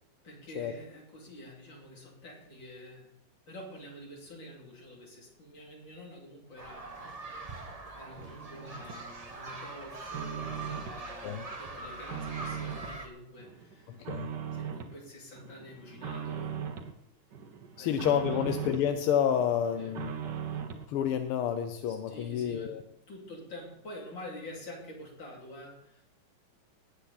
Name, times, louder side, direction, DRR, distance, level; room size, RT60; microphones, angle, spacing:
voice 1, 0.2-3.2 3.5-7.5 7.9-14.0 14.5-16.7 17.7-18.0 18.3-18.4 19.7-20.0 21.8-26.0, left 1 dB, 60° left, -1 dB, 3.8 m, -48 dB
sound 1, 6.6-13.1, right 3 dB, 25° right, 0.8 m, -42 dB
sound 2, 8.2-9.0 9.5-11.0 11.4-13.0 13.4-15.0 15.4-16.9 17.3-18.9 19.3-20.9, right 7 dB, 60° right, 1.6 m, -39 dB
voice 2, 17.8-20.1 20.9-22.8, left 9 dB, 90° left, 8 dB, 1.7 m, -29 dB
18.5 x 8.5 x 4.2 m, 0.76 s
omnidirectional pair, 2.4 m